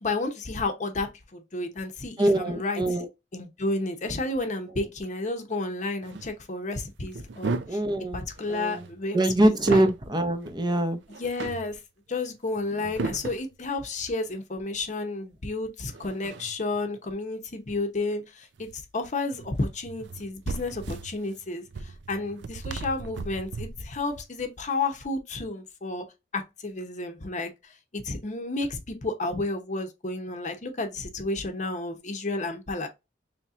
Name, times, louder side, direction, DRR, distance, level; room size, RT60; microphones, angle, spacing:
voice 1, 0.0-2.8 3.3-7.8 8.1-9.2 9.4-9.8 11.2-11.8 12.1-26.1 26.3-32.9, left 2 dB, 40° left, 0.8 m, -31 dB
voice 2, 2.2-3.1 7.7-8.2 8.5-8.8 9.1-11.0, right 1 dB, 25° right, 0.7 m, -23 dB
sound 1, 6.0-6.3 7.1-7.9 8.2-10.0 10.4-10.6 11.0-11.7 12.6-13.5 15.9-16.8 18.6-18.8 19.3-24.0, right 3 dB, 65° right, 0.5 m, -36 dB
4.1 x 3.2 x 2.5 m
head